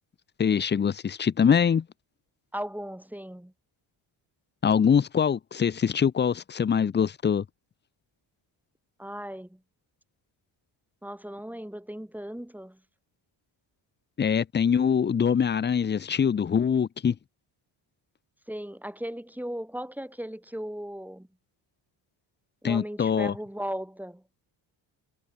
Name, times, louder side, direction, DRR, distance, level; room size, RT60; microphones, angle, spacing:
voice 1, 0.4-1.8 4.6-7.4 14.2-17.2 22.6-23.3, left 7 dB, 25° left, 0.5 m, -23 dB
voice 2, 2.5-3.5 9.0-9.6 11.0-12.8 18.5-21.3 22.6-24.2, equal, 5° right, 1.8 m, -37 dB
cardioid pair, 85°, 48 cm